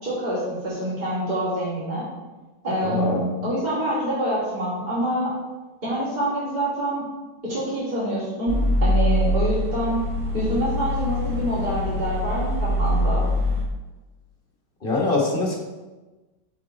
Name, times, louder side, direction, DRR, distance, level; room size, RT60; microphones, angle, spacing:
voice 1, 0.0-2.0 2.6-5.3 5.8-7.0 7.4-10.0 10.3-13.3, equal, 25° right, -10 dB, 2.8 m, -26 dB
voice 2, 2.8-3.3 14.8-15.6, left 3 dB, 30° left, -2 dB, 1.4 m, -23 dB
sound 1, 8.5-13.6, equal, 65° right, 2.4 m, -23 dB
9.3 x 4.8 x 4.0 m, 1.2 s
omnidirectional pair, 2.0 m